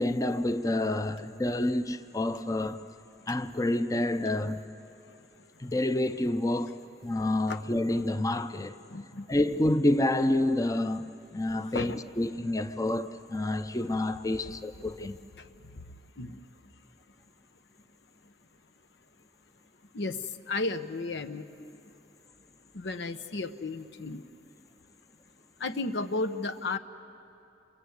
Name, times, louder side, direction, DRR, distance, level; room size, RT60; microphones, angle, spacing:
voice 1, 0.0-2.8 3.3-4.6 5.6-6.8 7.0-8.8 9.3-15.2 21.6-21.7, left 1 dB, 20° left, 0.6 m, -28 dB
voice 2, 8.9-9.3 11.7-12.0 16.2-16.4 19.9-20.2 20.5-21.4 22.7-24.2 25.6-26.8, left 3 dB, 85° left, 1.0 m, -33 dB
28.0 x 23.0 x 8.1 m
head